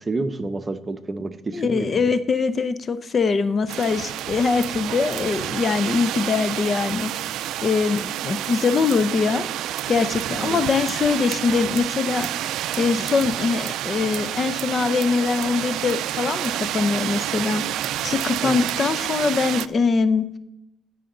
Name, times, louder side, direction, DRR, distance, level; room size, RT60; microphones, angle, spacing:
voice 1, 0.0-2.1 10.4-10.7 18.4-18.6, right 3 dB, 30° right, 9 dB, 0.9 m, -29 dB
voice 2, 1.5-7.1 7.6-9.4 9.9-12.3 12.8-17.6 18.0-20.3, left 4 dB, 40° left, 13 dB, 0.6 m, -22 dB
sound 1, 3.7-19.7, right 12 dB, 85° right, 0.3 m, -29 dB
14.5 x 5.8 x 3.9 m, 0.85 s
cardioid pair, 90°, 0 cm